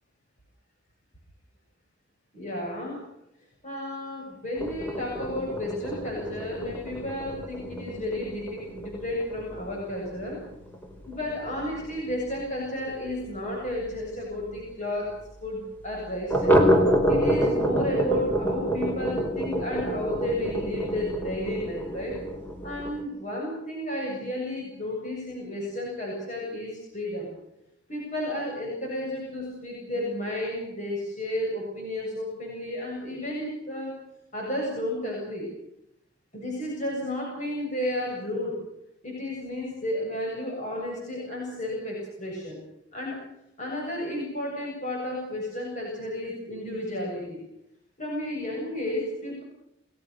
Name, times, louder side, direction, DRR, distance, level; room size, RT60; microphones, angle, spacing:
voice 1, 2.3-3.0 3.6-10.4 11.1-15.1 15.4-16.6 17.1-22.2 22.6-27.3 27.9-33.9 34.3-35.5 36.3-38.6 39.0-42.6 42.9-43.2 43.6-47.4 48.0-49.4, left 1 dB, 40° left, -2 dB, 7.6 m, -32 dB
sound 1, 4.6-13.8 14.1-14.2 14.5-14.6 15.0-15.1 16.3-23.0, equal, 10° left, 5.0 m, -28 dB
29.5 x 20.5 x 6.7 m, 0.82 s
head